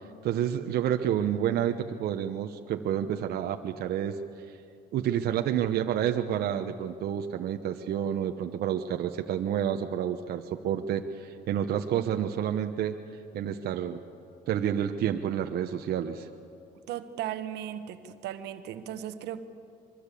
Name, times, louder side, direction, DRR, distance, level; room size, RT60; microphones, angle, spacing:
voice 1, 0.2-4.2 4.9-13.0 13.3-14.0 14.5-16.3, right 10 dB, 65° right, 5 dB, 1.0 m, -29 dB
voice 2, 16.9-19.4, right 11 dB, 85° right, 10 dB, 1.3 m, -36 dB
24.5 x 23.0 x 8.5 m, 2.5 s
cardioid pair, 110°, 17 cm